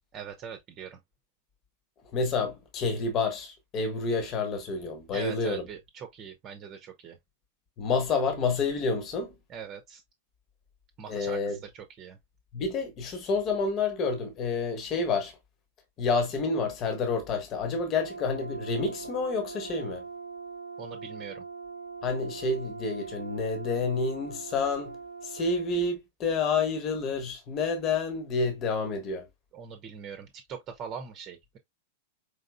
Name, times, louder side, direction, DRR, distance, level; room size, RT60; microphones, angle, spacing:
voice 1, 0.1-1.0 5.1-7.2 9.5-10.0 11.0-12.2 20.8-21.5 29.5-31.6, right 7 dB, 30° right, 1.0 m, -42 dB
voice 2, 2.1-5.6 7.8-9.3 11.1-11.6 12.5-15.4 16.0-20.0 22.0-25.0 25.2-29.3, left 4 dB, 35° left, 1.4 m, -29 dB
Brass instrument, 18.0-25.7, right 4 dB, 75° right, 0.6 m, -42 dB
5.0 x 3.7 x 2.2 m
figure-of-eight pair, 95°, 0 cm